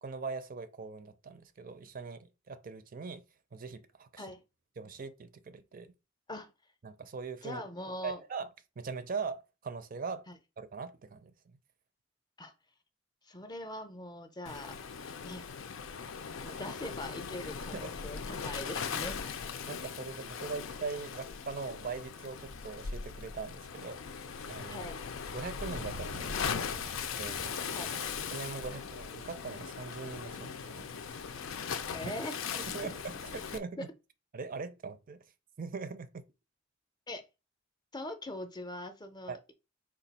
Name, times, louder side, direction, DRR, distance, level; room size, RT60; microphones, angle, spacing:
voice 1, 0.0-3.2 3.5-4.3 4.8-5.9 6.8-7.6 8.0-8.5 8.8-10.2 10.6-11.6 17.7-17.9 19.7-24.0 24.5-24.9 25.3-27.6 28.3-31.2 32.6-33.9 34.3-35.2 35.6-36.1 39.3-39.4, right 4 dB, 45° right, 0.5 m, -41 dB
voice 2, 7.4-8.2 10.3-10.4 12.4-12.5 13.2-14.8 15.2-15.5 16.3-19.4 24.7-24.9 27.7-27.9 28.7-28.9 31.8-32.7 33.8-33.9 37.1-37.2 37.9-39.5, left 1 dB, 20° left, 0.6 m, -42 dB
Waves surf, 14.5-33.6, left 6 dB, 75° left, 0.5 m, -39 dB
sound 1, 25.7-31.8, right 3 dB, 90° right, 0.6 m, -52 dB
4.9 x 2.4 x 4.0 m
head